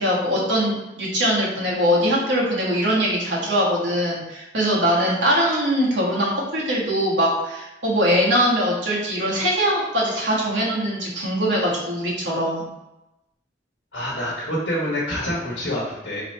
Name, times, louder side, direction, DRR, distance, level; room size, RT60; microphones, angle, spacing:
voice 1, 0.0-12.7, equal, 80° right, -4 dB, 1.4 m, -22 dB
voice 2, 13.9-16.2, equal, 70° left, -6 dB, 1.3 m, -26 dB
4.0 x 3.0 x 4.2 m, 0.96 s
head